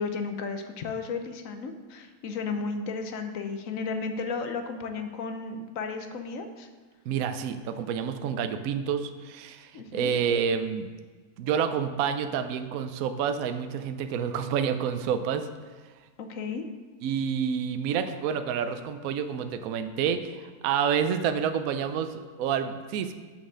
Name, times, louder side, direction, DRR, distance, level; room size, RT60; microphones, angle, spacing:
voice 1, 0.0-6.7 9.7-10.1 16.2-16.6, left 4 dB, 60° left, 7 dB, 1.1 m, -34 dB
voice 2, 7.1-10.9 11.4-15.5 17.0-23.1, right 7 dB, 70° right, 9 dB, 0.9 m, -28 dB
7.0 x 5.4 x 6.2 m, 1.4 s
omnidirectional pair, 1.7 m